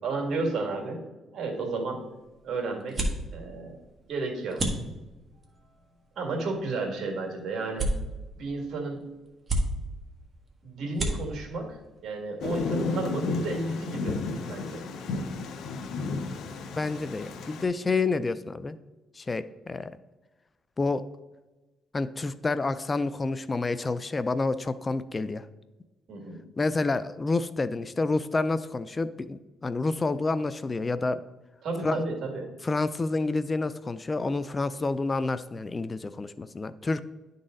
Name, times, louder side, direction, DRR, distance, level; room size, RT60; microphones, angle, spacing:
voice 1, 0.0-1.0 1.3-2.0 2.4-3.1 3.3-3.8 4.1-4.6 6.2-7.9 8.4-9.1 10.6-14.2 14.5-14.8 26.1-26.4 31.6-32.5, right 3 dB, 65° right, 1 dB, 2.0 m, -32 dB
sound 1, 1.5-13.1, right 1 dB, 30° right, 1.5 m, -36 dB
Thunder, 12.4-17.6, left 3 dB, 75° left, 0.6 m, -33 dB
voice 2, 16.8-18.8 19.2-19.9 20.8-21.0 21.9-25.5 26.6-31.2 31.8-32.0 32.6-37.0, left 3 dB, 25° left, 14 dB, 0.3 m, -29 dB
11.0 x 4.0 x 3.8 m, 1.1 s
cardioid pair, 105°, 0 cm